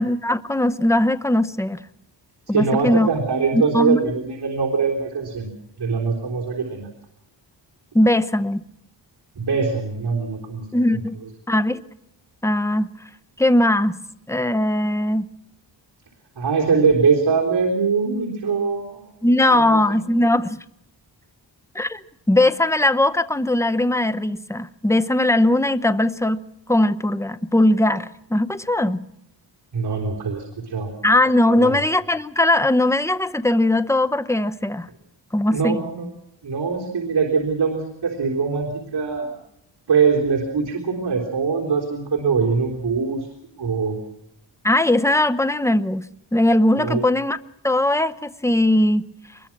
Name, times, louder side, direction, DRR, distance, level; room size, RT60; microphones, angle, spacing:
voice 1, 0.0-1.8 2.5-3.1 3.5-4.0 7.9-8.6 10.7-11.2 11.5-11.8 12.4-12.9 13.4-14.0 14.3-15.3 19.2-20.6 21.7-22.0 22.3-26.4 26.7-29.0 31.0-34.9 35.3-35.8 44.6-47.4 47.6-49.0, left 1 dB, 5° left, 11 dB, 0.8 m, -19 dB
voice 2, 2.5-5.5 5.8-6.9 9.4-10.7 10.9-11.0 16.4-20.0 29.7-30.9 31.6-31.8 35.5-36.1 36.4-39.3 39.9-43.3 43.6-44.0 46.8-47.0, right 5 dB, 60° right, 0 dB, 3.8 m, -22 dB
23.0 x 21.5 x 6.0 m, 0.75 s
wide cardioid pair, 100°, 43 cm